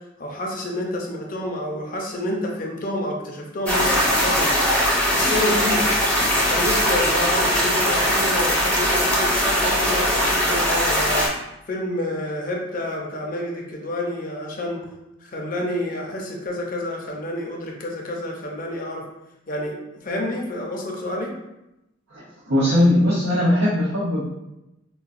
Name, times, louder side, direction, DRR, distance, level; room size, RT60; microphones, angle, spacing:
voice 1, 0.2-4.5 5.1-5.8 6.4-11.3 11.7-14.8 15.2-19.0 19.5-21.3, left 1 dB, 45° left, 0 dB, 0.6 m, -28 dB
sound 1, 3.6-11.3, equal, 5° left, 0.6 m, -20 dB
voice 2, 22.1-24.2, left 1 dB, 85° right, -7 dB, 0.7 m, -20 dB
3.9 x 2.2 x 2.5 m, 0.92 s
head